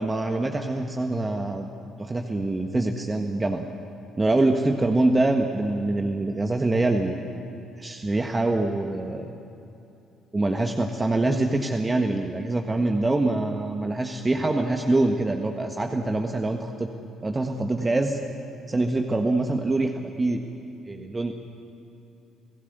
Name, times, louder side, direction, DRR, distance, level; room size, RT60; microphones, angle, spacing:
voice 1, 0.0-1.7 2.0-3.6 4.2-7.2 7.8-9.3 10.3-16.9 17.2-18.2 18.7-20.4 20.9-21.3, right 2 dB, 25° right, 4 dB, 1.5 m, -24 dB
29.0 x 17.0 x 8.2 m, 2.8 s
hypercardioid pair, 50°, 0 cm